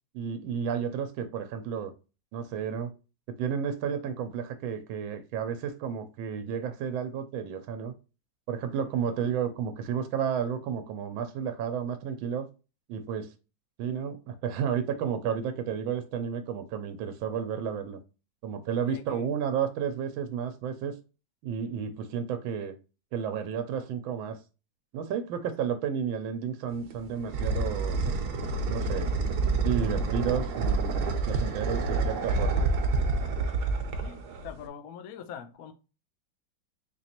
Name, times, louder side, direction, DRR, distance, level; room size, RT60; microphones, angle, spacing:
voice 1, 0.1-1.9 2.3-2.9 3.3-7.9 8.5-12.5 12.9-13.3 13.8-18.0 18.4-20.9 21.4-22.8 23.1-24.4 24.9-28.2 28.6-29.1 29.6-32.7, right 7 dB, 90° right, 1.4 m, -32 dB
voice 2, 18.9-19.3 34.0-35.7, left 8 dB, 70° left, 0.9 m, -43 dB
sound 1, 26.7-34.7, right 3 dB, 70° right, 1.2 m, -28 dB
4.4 x 3.0 x 2.8 m
omnidirectional pair, 2.1 m